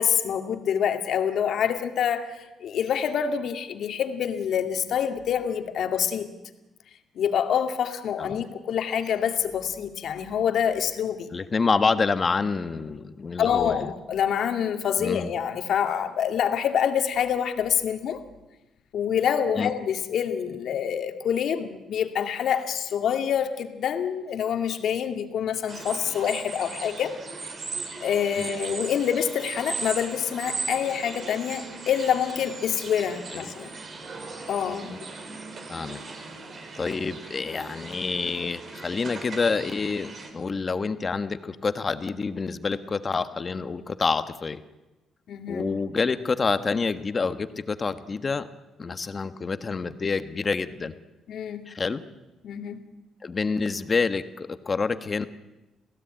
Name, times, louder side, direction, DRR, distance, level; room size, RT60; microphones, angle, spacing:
voice 1, 0.0-6.3 7.2-11.3 13.4-18.2 18.9-27.2 28.0-33.7 34.5-34.9 45.3-45.6 51.3-51.7 52.4-52.8, left 8 dB, 70° left, 6 dB, 2.2 m, -26 dB
voice 2, 11.3-13.9 15.0-15.3 19.5-19.7 28.4-28.5 33.3-33.5 34.9-35.0 35.7-36.0 36.7-44.6 45.5-48.5 48.8-50.9 51.7-52.0 53.2-55.3, left 4 dB, 35° left, 11 dB, 1.4 m, -27 dB
sound 1, 25.7-40.3, right 4 dB, 45° right, 4.7 m, -38 dB
28.0 x 16.5 x 9.0 m, 1.0 s
cardioid pair, 90°, 0 cm